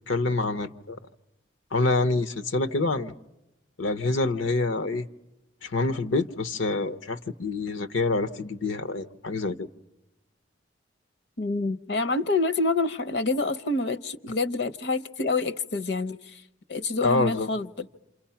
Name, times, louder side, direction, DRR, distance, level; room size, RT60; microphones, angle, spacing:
voice 1, 0.1-1.0 1.7-3.1 3.8-5.1 5.6-9.7 17.0-17.5, left 3 dB, 85° left, 0.9 m, -26 dB
voice 2, 11.4-16.4 16.7-17.9, left 3 dB, 60° left, 0.8 m, -27 dB
28.5 x 27.5 x 5.8 m
head